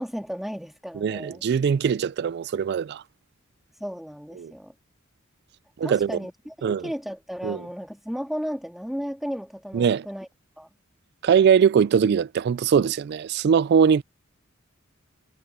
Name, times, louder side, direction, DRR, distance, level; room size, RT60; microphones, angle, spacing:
voice 1, 0.0-1.4 3.7-4.7 5.8-10.3 10.6-10.7, equal, ahead, 2.1 m, -34 dB
voice 2, 1.0-3.0 4.4-4.5 5.8-6.2 6.6-6.8 7.4-7.6 9.7-10.1 11.2-14.0, right 7 dB, 55° right, 0.3 m, -21 dB
head